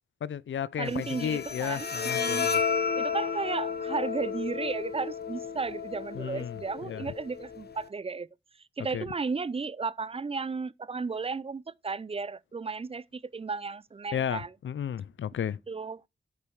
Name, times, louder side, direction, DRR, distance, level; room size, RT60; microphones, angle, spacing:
voice 1, 0.2-2.6 6.1-6.6 6.9-7.0 8.9-9.0 14.1-15.6, left 9 dB, 85° left, 0.4 m, -33 dB
voice 2, 0.8-2.5 3.0-8.3 8.8-14.5 15.7-16.1, right 4 dB, 30° right, 0.4 m, -34 dB
Bowed string instrument, 0.9-7.9, left 6 dB, 55° left, 1.1 m, -32 dB
8.3 x 5.2 x 4.6 m
wide cardioid pair, 80°, 19 cm